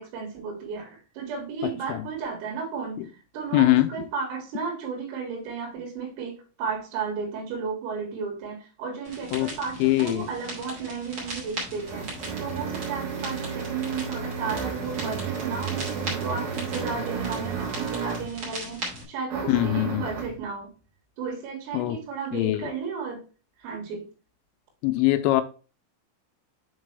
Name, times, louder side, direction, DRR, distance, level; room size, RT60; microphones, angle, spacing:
voice 1, 0.0-12.1 12.4-20.7 21.2-23.2 23.6-24.1, right 5 dB, 80° right, 4.5 m, -34 dB
voice 2, 1.6-2.1 3.0-3.1 3.5-3.9 9.3-9.5 9.8-10.3 19.5-20.1 21.7-22.0 22.3-22.7 24.8-25.4, left 17 dB, 85° left, 3.0 m, -22 dB
sound 1, 9.0-19.0, right 1 dB, 35° right, 2.4 m, -39 dB
sound 2, 11.2-18.4 19.3-20.4, right 6 dB, 60° right, 2.6 m, -33 dB
8.1 x 4.3 x 3.2 m
omnidirectional pair, 6.0 m